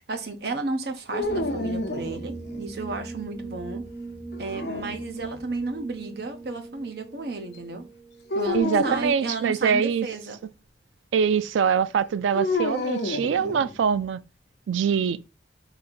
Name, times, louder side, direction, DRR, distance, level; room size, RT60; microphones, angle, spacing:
voice 1, 0.0-3.8 4.4-7.8 8.3-10.4, right 3 dB, 60° right, 0.8 m, -33 dB
sound 1, 1.1-2.7 4.3-5.4 8.3-9.1 12.3-14.0, left 2 dB, 60° left, 0.7 m, -30 dB
sound 2, 1.2-8.7, right 3 dB, 5° right, 1.3 m, -39 dB
voice 2, 8.5-10.1 11.1-14.2 14.7-15.2, right 7 dB, 85° right, 0.3 m, -23 dB
4.0 x 2.8 x 4.2 m
head